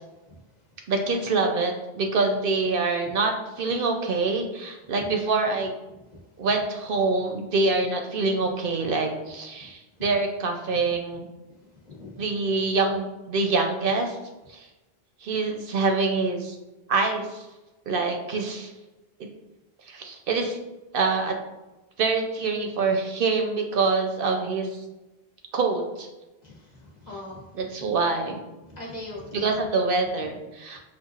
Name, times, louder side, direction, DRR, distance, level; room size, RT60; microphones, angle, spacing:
voice 1, 0.9-5.7 6.4-11.3 12.2-14.2 14.5-14.7 15.2-16.6 16.9-17.5 17.9-18.7 19.2-19.3 19.9-20.6 20.9-21.4 22.0-24.8 25.5-26.1 27.5-28.4 29.3-30.8, right 3 dB, 65° right, 3 dB, 0.7 m, -25 dB
voice 2, 11.8-12.2 26.4-27.5 28.7-29.7, left 2 dB, 45° left, -3 dB, 1.0 m, -41 dB
5.6 x 2.4 x 2.4 m, 1.0 s
omnidirectional pair, 1.0 m